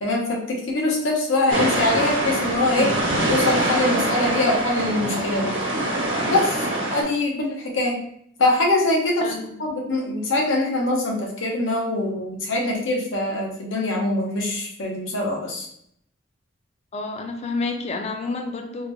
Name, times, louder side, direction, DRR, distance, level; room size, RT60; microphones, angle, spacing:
voice 1, 0.0-2.9 3.3-5.5 6.3-6.6 6.9-8.0 8.4-9.3 9.6-15.7, left 2 dB, 90° left, -1 dB, 0.8 m, -23 dB
sound 1, 1.5-7.0, right 1 dB, 75° right, 0.9 m, -24 dB
voice 2, 9.2-9.6 16.9-18.9, left 3 dB, 35° left, 5 dB, 0.4 m, -29 dB
3.6 x 2.2 x 3.0 m, 0.72 s
head